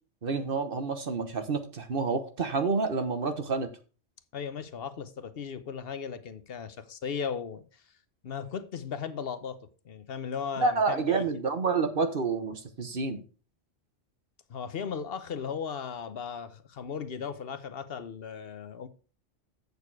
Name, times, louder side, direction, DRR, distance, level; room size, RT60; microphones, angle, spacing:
voice 1, 0.2-3.7 10.6-13.2, right 4 dB, 50° right, 1.3 m, -28 dB
voice 2, 4.3-7.9 8.2-11.4 14.5-18.9, left 6 dB, 55° left, 1.0 m, -37 dB
8.2 x 6.9 x 4.7 m
omnidirectional pair, 1.2 m